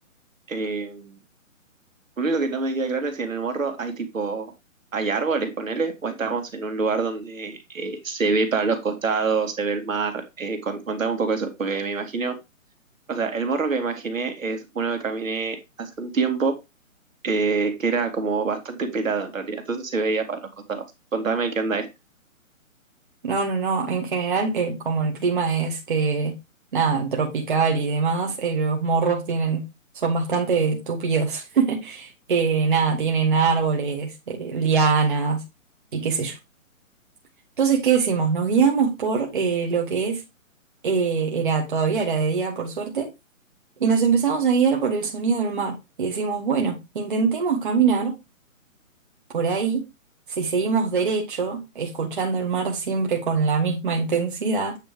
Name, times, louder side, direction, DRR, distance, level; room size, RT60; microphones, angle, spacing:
voice 1, 0.5-1.2 2.2-4.5 4.9-12.4 13.1-16.6 17.2-20.4 20.7-20.8 21.1-21.9, right 4 dB, 70° right, 2.2 m, -26 dB
voice 2, 23.2-26.3 26.7-29.6 29.9-35.4 35.9-36.4 37.6-40.2 40.8-43.1 43.8-48.1 49.3-49.8 50.3-54.8, right 5 dB, 40° right, 1.4 m, -23 dB
8.9 x 3.2 x 5.1 m
hypercardioid pair, 175°, 41 cm